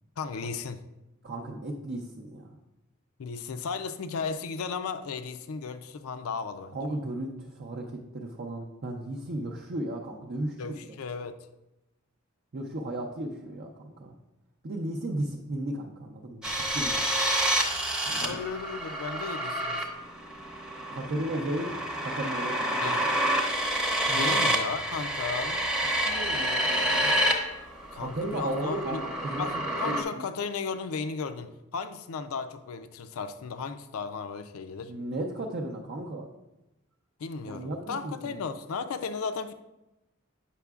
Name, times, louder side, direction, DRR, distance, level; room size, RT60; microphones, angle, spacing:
voice 1, 0.2-0.8 3.2-6.8 10.6-11.4 18.2-19.9 22.8-23.0 24.1-25.7 27.9-29.0 29.4-34.9 37.2-39.5, left 5 dB, 75° left, 10 dB, 0.4 m, -35 dB
voice 2, 1.2-2.5 6.7-10.7 12.5-14.1 14.6-17.0 18.1-18.4 20.9-23.0 24.1-24.3 25.8-27.2 27.9-29.5 29.8-30.3 34.9-36.3 37.5-38.4, right 1 dB, 50° right, 0 dB, 0.6 m, -35 dB
sound 1, 16.4-27.3 27.6-30.0, right 1 dB, 5° right, 0.7 m, -28 dB
8.3 x 5.8 x 2.3 m, 0.95 s
head